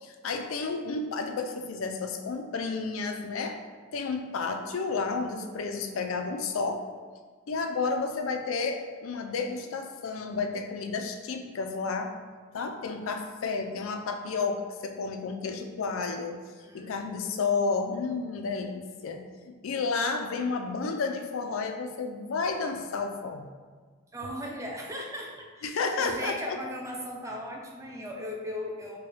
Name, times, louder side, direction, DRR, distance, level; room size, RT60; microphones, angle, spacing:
voice 1, 0.0-3.6 3.9-6.8 7.5-12.1 12.5-16.4 16.7-23.5 25.6-26.6, left 4 dB, 80° left, 5 dB, 0.4 m, -31 dB
voice 2, 16.6-17.1 24.1-29.0, equal, 15° right, 0 dB, 0.5 m, -38 dB
4.5 x 2.2 x 3.2 m, 1.5 s
head